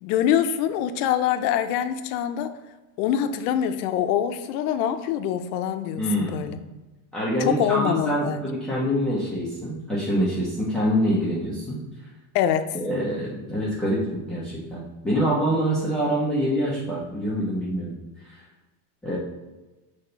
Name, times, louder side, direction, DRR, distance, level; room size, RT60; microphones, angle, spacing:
voice 1, 0.0-2.5 3.0-6.6 7.5-8.4 12.3-12.7, left 10 dB, 90° left, 10 dB, 0.7 m, -24 dB
voice 2, 6.0-6.5 7.1-11.8 12.7-14.0 14.3-18.0 18.2-18.4 19.0-19.2, equal, ahead, -8 dB, 1.0 m, -25 dB
7.3 x 3.5 x 4.0 m, 1.1 s
cardioid pair, 155°, 45 cm